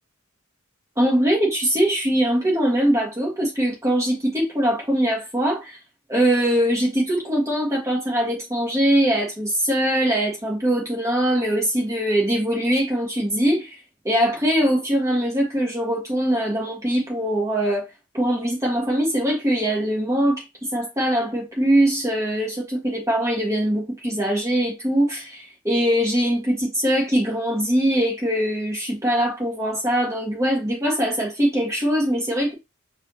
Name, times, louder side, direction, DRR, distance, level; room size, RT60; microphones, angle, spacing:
voice 1, 1.0-5.8 6.1-13.8 14.0-17.8 18.1-20.4 20.7-32.5, right 1 dB, 15° right, 1.5 m, -22 dB
4.8 x 2.8 x 2.9 m
head